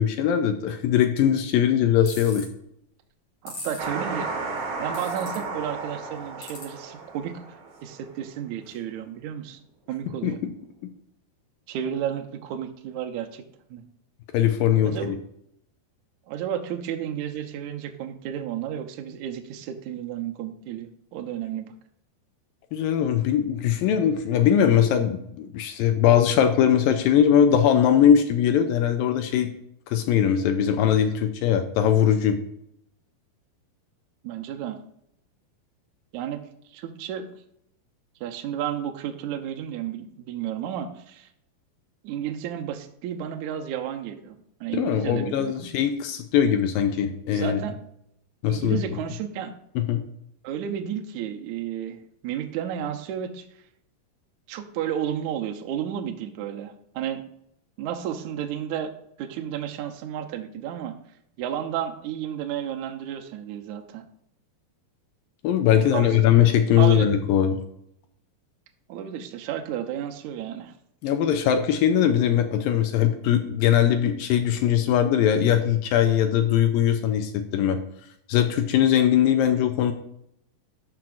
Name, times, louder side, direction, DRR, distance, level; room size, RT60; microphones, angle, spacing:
voice 1, 0.0-2.5 10.2-10.4 14.3-15.2 22.7-29.5 29.9-32.4 44.7-47.6 48.4-48.8 49.8-50.0 65.4-67.6 71.0-77.8 78.3-79.9, left 9 dB, 80° left, 7 dB, 2.2 m, -21 dB
sound 1, 2.1-2.4 3.5-3.8 4.9-5.4 6.4-6.6, left 2 dB, 45° left, 3.9 m, -38 dB
voice 2, 3.4-4.3 4.8-7.4 7.8-9.6 9.9-10.4 11.7-13.4 13.7-13.8 14.8-15.1 16.3-21.7 34.2-34.8 36.1-36.4 36.7-37.2 38.2-41.3 42.0-45.7 47.3-47.8 48.5-49.5 50.4-53.5 54.5-57.2 57.8-58.9 59.2-60.9 61.4-64.1 65.7-66.2 66.8-67.1 68.9-70.7, right 9 dB, 80° right, 5 dB, 1.7 m, -32 dB
sound 2, 3.8-8.1, right 3 dB, 55° right, 1.8 m, -33 dB
12.0 x 5.9 x 2.5 m, 0.74 s
omnidirectional pair, 4.5 m